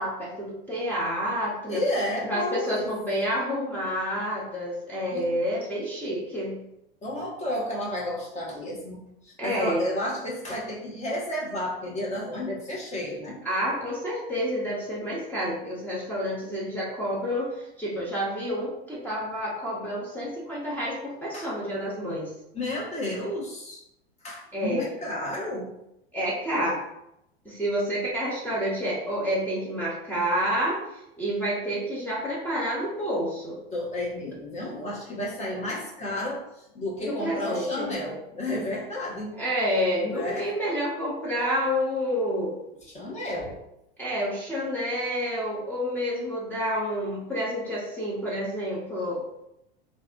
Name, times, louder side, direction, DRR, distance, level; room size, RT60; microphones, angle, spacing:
voice 1, 0.0-1.8 2.2-6.6 9.4-9.8 13.4-22.3 24.5-24.9 26.1-26.8 27.4-33.6 37.1-37.9 39.3-42.6 44.0-49.2, equal, 5° left, -6 dB, 0.8 m, -29 dB
voice 2, 1.7-2.9 5.1-5.3 7.0-13.4 21.3-21.5 22.5-23.8 24.2-25.7 33.7-39.3 40.1-40.5 42.8-43.6, left 1 dB, 25° left, -4 dB, 1.2 m, -32 dB
3.2 x 2.5 x 2.5 m, 0.81 s
figure-of-eight pair, 90°, 30 cm